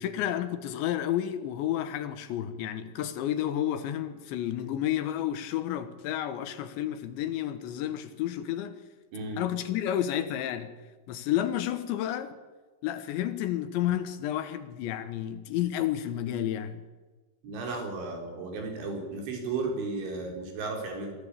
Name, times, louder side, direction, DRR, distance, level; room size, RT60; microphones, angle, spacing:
voice 1, 0.0-8.8 9.4-10.7 11.1-12.4 12.8-16.8, left 11 dB, 80° left, 3.5 m, -31 dB
voice 2, 17.4-21.1, right 3 dB, 80° right, 6.4 m, -34 dB
23.5 x 14.5 x 8.5 m
omnidirectional pair, 5.3 m